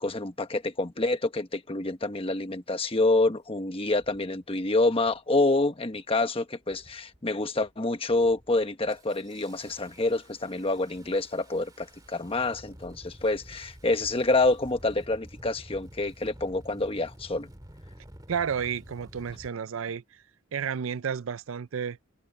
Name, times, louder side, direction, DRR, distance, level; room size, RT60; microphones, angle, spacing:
voice 1, 0.0-17.5, left 2 dB, 25° left, 1.2 m, -27 dB
Engine starting, 3.1-3.2 4.0-4.3 5.0-5.3 5.7-6.2 6.6-7.2 7.6-7.8 8.1-19.5, equal, 20° right, 2.0 m, -50 dB
voice 2, 18.3-20.2 20.5-22.0, right 7 dB, 65° right, 0.5 m, -31 dB
head